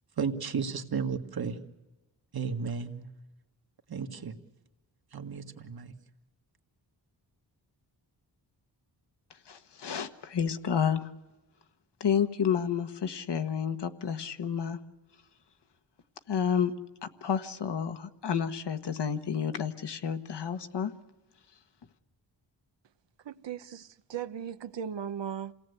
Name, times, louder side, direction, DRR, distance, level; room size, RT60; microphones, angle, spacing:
voice 1, 0.2-1.6 2.3-3.1 3.9-4.3 5.1-5.9, right 6 dB, 55° right, 1.9 m, -33 dB
voice 2, 9.4-11.1 12.0-14.8 16.3-16.7 17.0-20.9, left 7 dB, 65° left, 1.4 m, -30 dB
voice 3, 23.2-25.5, right 8 dB, 75° right, 0.9 m, -37 dB
28.5 x 18.0 x 8.3 m
wide cardioid pair, 160°, 43 cm